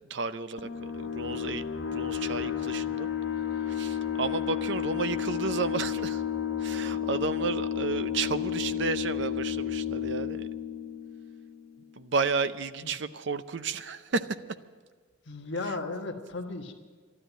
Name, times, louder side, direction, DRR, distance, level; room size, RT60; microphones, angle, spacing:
voice 1, 0.1-1.6 1.9-3.1 3.6-6.2 6.6-10.5 12.0-14.6, right 4 dB, 60° right, 13 dB, 0.6 m, -32 dB
sound 1, 0.6-11.9, left 9 dB, 80° left, 1.9 m, -32 dB
voice 2, 15.2-16.7, left 3 dB, 60° left, 3 dB, 1.4 m, -35 dB
12.5 x 12.0 x 9.1 m, 1.5 s
head